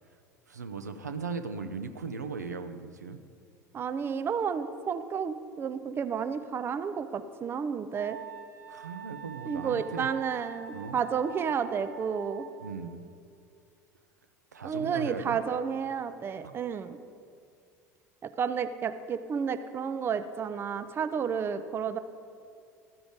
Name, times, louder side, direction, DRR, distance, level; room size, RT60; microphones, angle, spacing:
voice 1, 0.5-3.2 8.7-10.1 10.7-11.0 12.6-13.1 14.5-15.4 16.4-16.6, right 5 dB, 80° right, 8 dB, 0.4 m, -38 dB
voice 2, 3.7-8.2 9.5-12.5 14.6-17.0 18.2-22.0, right 6 dB, 25° right, 11 dB, 0.4 m, -31 dB
Wind instrument woodwind instrument, 7.9-12.9, right 9 dB, 60° right, 1.0 m, -45 dB
13.5 x 4.9 x 5.1 m, 2.3 s
figure-of-eight pair, 70°, 9 cm